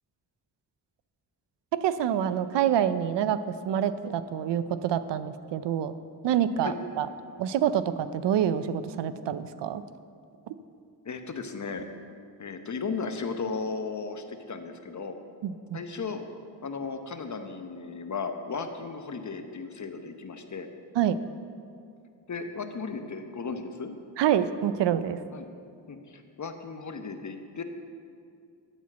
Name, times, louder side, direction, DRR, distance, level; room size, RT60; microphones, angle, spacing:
voice 1, 1.7-6.0 6.2-7.1 7.4-9.8 10.5-10.6 15.4-15.8 20.9-21.2 24.2-25.2, right 9 dB, 80° right, 13 dB, 0.6 m, -27 dB
voice 2, 11.0-11.9 12.4-15.1 15.7-16.2 16.6-20.7 22.3-23.9 25.3-25.5 25.9-27.6, left 4 dB, 45° left, 7 dB, 1.0 m, -35 dB
12.5 x 4.4 x 7.3 m, 2.3 s
cardioid pair, 60°, 42 cm